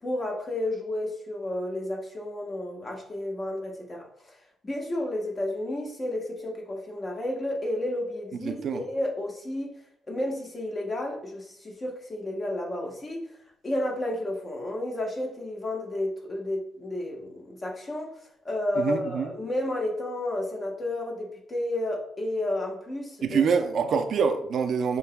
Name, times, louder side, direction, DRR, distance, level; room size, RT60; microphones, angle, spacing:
voice 1, 0.0-4.4 4.6-9.7 10.1-13.2 13.6-18.1 18.4-23.4, left 1 dB, 30° left, 1.1 m, -31 dB
voice 2, 8.4-8.8 18.8-19.3 23.2-25.0, right 6 dB, 60° right, 0.5 m, -25 dB
7.0 x 2.9 x 2.2 m
cardioid pair, 90°, 0 cm